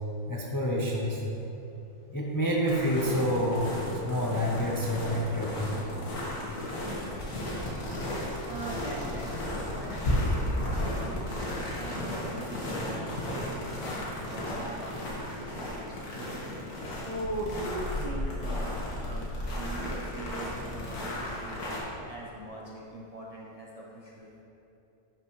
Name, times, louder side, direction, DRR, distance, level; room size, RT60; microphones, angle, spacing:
voice 1, 0.3-1.2 2.1-3.8 4.1-5.6, equal, 30° left, -3 dB, 0.4 m, -28 dB
sound 1, 2.7-21.8, left 1 dB, 85° left, 1.9 m, -34 dB
voice 2, 8.5-9.3 9.6-13.0 13.3-16.4 17.0-24.4, right 1 dB, 35° right, -5 dB, 0.6 m, -41 dB
10.0 x 5.8 x 3.1 m, 2.9 s
omnidirectional pair, 1.6 m